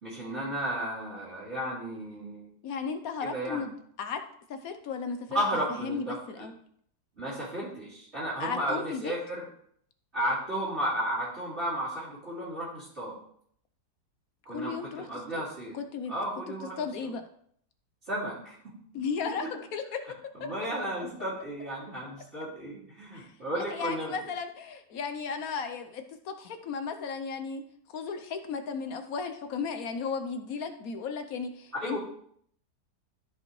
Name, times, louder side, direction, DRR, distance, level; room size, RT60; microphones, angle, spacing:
voice 1, 0.0-2.5 3.2-3.7 5.3-6.5 7.2-9.4 10.1-13.2 14.4-15.8 16.1-17.1 18.1-18.7 20.3-24.1 31.8-32.0, right 1 dB, 40° right, -11 dB, 2.9 m, -33 dB
voice 2, 2.6-4.2 4.5-5.4 5.8-6.5 8.4-9.2 14.5-15.0 15.3-15.4 15.7-16.1 16.8-17.2 18.9-20.0 20.4-20.5 23.1-23.3 23.6-27.6 27.9-32.0, left 5 dB, 65° left, 7 dB, 1.1 m, -35 dB
13.0 x 5.2 x 3.1 m, 0.64 s
omnidirectional pair, 1.8 m